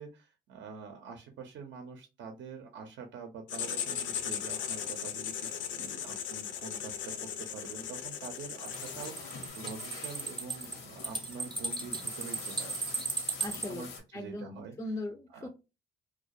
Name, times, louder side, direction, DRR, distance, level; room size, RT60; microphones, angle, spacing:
voice 1, 0.0-13.0 13.7-14.7 15.3-15.5, right 5 dB, 70° right, 5 dB, 0.6 m, -46 dB
Writing, 3.5-9.4, left 8 dB, 70° left, 0.5 m, -37 dB
sound 1, 8.1-13.7, right 3 dB, 25° right, 0.7 m, -36 dB
sound 2, 8.7-14.0, left 5 dB, 90° left, 0.8 m, -45 dB
voice 2, 13.4-13.9 14.1-15.5, left 2 dB, 15° left, 7 dB, 0.3 m, -39 dB
2.3 x 2.2 x 2.5 m, 0.28 s
cardioid pair, 90°, 20 cm